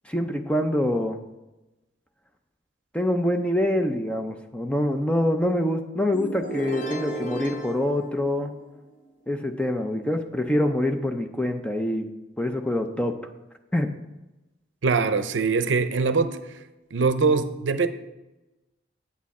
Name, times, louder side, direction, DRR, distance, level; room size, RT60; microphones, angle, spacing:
voice 1, 0.1-1.2 2.9-8.5 9.3-12.1 12.4-13.1 13.7-13.9, left 1 dB, 5° left, 0.5 m, -25 dB
sound 1, 6.1-8.9, right 1 dB, 40° left, 0.9 m, -34 dB
voice 2, 14.8-16.4 16.9-17.9, right 4 dB, 80° right, 0.6 m, -22 dB
8.7 x 8.3 x 4.2 m
head